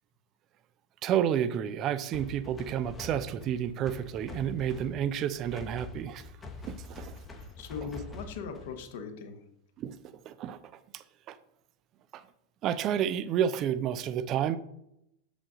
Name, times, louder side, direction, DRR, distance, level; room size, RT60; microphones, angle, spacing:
voice 1, 1.0-6.2 6.6-7.2 7.8-7.9 9.8-10.0 10.3-10.6 10.9-11.4 12.1-12.2 12.6-14.6, right 9 dB, 35° right, 14 dB, 0.4 m, -30 dB
sound 1, 2.1-8.9, left 3 dB, 15° left, 0.9 m, -45 dB
voice 2, 7.3-9.4, left 6 dB, 50° left, 5 dB, 1.0 m, -40 dB
7.3 x 5.1 x 3.7 m, 0.80 s
figure-of-eight pair, 90°, 0 cm